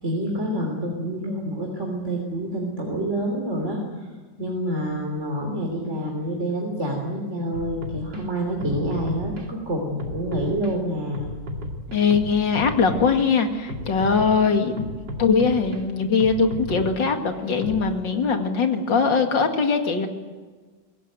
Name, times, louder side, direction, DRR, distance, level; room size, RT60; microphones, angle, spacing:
voice 1, 0.0-4.1 4.4-11.3, right 1 dB, 40° right, 1 dB, 3.5 m, -27 dB
sound 1, 7.5-8.2 8.6-9.5 10.0-10.7 11.1-13.3 13.7-15.8 16.2-17.9, equal, 70° right, 3.2 m, -34 dB
voice 2, 11.9-14.9 15.2-20.1, left 5 dB, 80° left, 5 dB, 2.8 m, -21 dB
23.0 x 17.5 x 9.3 m, 1.4 s
omnidirectional pair, 2.0 m